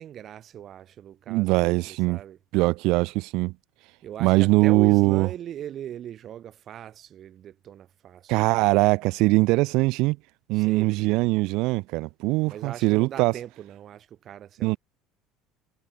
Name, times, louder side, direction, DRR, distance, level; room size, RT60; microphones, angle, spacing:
voice 1, 0.0-2.4 4.0-8.6 10.5-11.3 12.5-14.8, right 10 dB, 45° right, 4.4 m, -39 dB
voice 2, 1.3-2.2 2.5-3.5 4.2-5.3 8.3-10.2 10.5-13.3 14.6-14.8, right 23 dB, 70° right, 0.8 m, -21 dB
cardioid pair, 115°, 0 cm